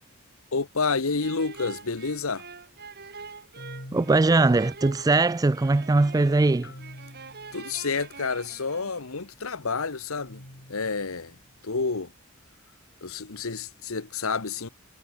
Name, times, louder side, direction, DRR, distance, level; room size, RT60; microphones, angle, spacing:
voice 1, 0.5-2.5 7.5-10.4 10.7-11.4 11.6-12.1 13.0-14.7, left 4 dB, 70° left, 1.2 m, -29 dB
sound 1, 1.2-9.2, right 5 dB, 50° right, 5.9 m, -45 dB
sound 2, 1.8-1.9 3.6-5.5 6.6-8.3 10.2-11.7, left 1 dB, 55° left, 4.2 m, -47 dB
voice 2, 3.9-6.7, right 3 dB, 15° right, 0.3 m, -21 dB
head